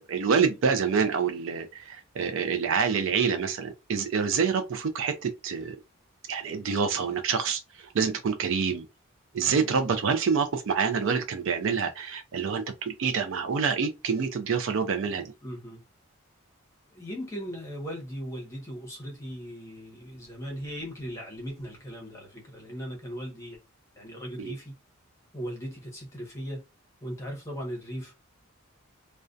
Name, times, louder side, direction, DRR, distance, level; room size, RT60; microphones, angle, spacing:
voice 1, 0.1-5.8 6.3-8.9 9.3-15.3 24.4-24.5, right 6 dB, 60° right, 0.4 m, -27 dB
voice 2, 15.4-15.8 16.9-23.6 23.9-24.7 25.3-26.6 27.0-28.1, equal, 15° left, 0.8 m, -38 dB
2.3 x 2.1 x 2.5 m
head